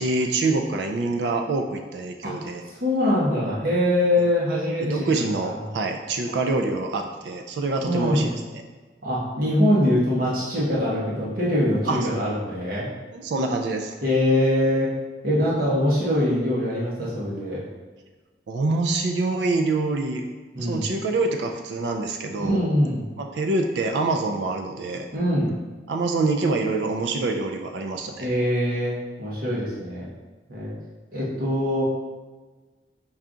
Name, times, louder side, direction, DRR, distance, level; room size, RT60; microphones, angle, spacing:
voice 1, 0.0-2.6 4.2-4.3 4.8-8.6 11.9-12.1 13.1-14.0 18.5-20.2 20.6-22.6 23.2-25.1 25.9-28.3, right 3 dB, 70° right, 4 dB, 0.4 m, -26 dB
voice 2, 2.8-5.1 5.4-5.5 7.8-8.3 9.0-12.9 14.0-14.9 15.2-17.6 20.5-20.9 22.4-23.0 25.1-25.5 28.2-30.1 30.5-30.7 31.1-31.8, left 1 dB, 55° right, -7 dB, 1.0 m, -23 dB
5.5 x 2.4 x 3.7 m, 1.3 s
head